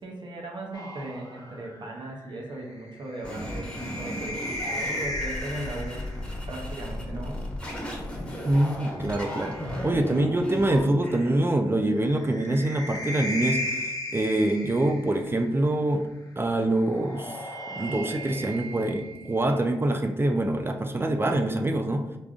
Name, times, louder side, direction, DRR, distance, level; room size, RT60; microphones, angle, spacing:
voice 1, 0.0-6.0 6.5-7.5, right 1 dB, 50° right, -1 dB, 0.7 m, -37 dB
sound 1, 0.7-6.3 7.6-10.6 12.0-15.4 16.7-19.6, equal, 40° left, 0.7 m, -36 dB
sound 2, 3.2-11.3, equal, 10° left, 1.2 m, -35 dB
voice 2, 8.4-9.5 9.8-13.6 14.1-16.1 16.4-17.5 17.7-22.2, right 1 dB, 25° right, 5 dB, 0.4 m, -25 dB
3.5 x 2.5 x 2.3 m, 0.94 s
supercardioid pair, 40°, 10 cm